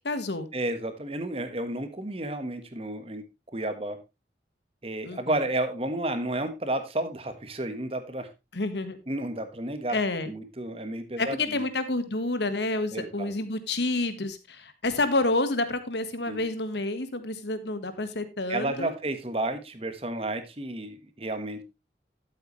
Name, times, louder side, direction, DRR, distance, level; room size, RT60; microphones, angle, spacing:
voice 1, 0.0-0.5 5.0-5.4 8.5-9.0 9.9-10.3 11.2-18.9, left 2 dB, 75° left, 11 dB, 1.5 m, -29 dB
voice 2, 0.5-3.2 3.5-4.0 4.8-8.3 9.1-10.0 10.3-11.7 12.9-13.3 16.3-16.4 18.5-21.6, right 1 dB, 35° right, 9 dB, 1.4 m, -32 dB
12.5 x 8.1 x 3.1 m, 0.24 s
head